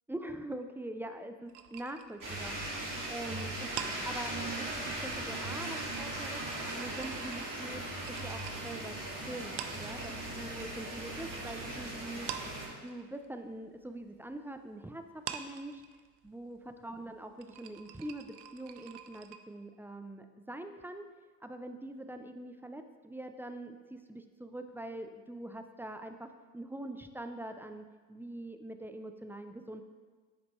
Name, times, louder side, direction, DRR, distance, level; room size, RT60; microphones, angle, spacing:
voice 1, 0.1-2.6 3.1-3.7 4.0-6.4 6.8-12.3 12.8-15.8 16.2-21.1 21.4-29.8, right 1 dB, 5° right, 7 dB, 0.3 m, -43 dB
sound 1, 1.5-10.5 10.8-11.8 12.1-19.4, right 10 dB, 60° right, 0.6 m, -46 dB
sound 2, 2.2-12.7, right 1 dB, 40° right, 2.2 m, -38 dB
9.1 x 5.1 x 3.0 m, 1.4 s
hypercardioid pair, 55°, 47 cm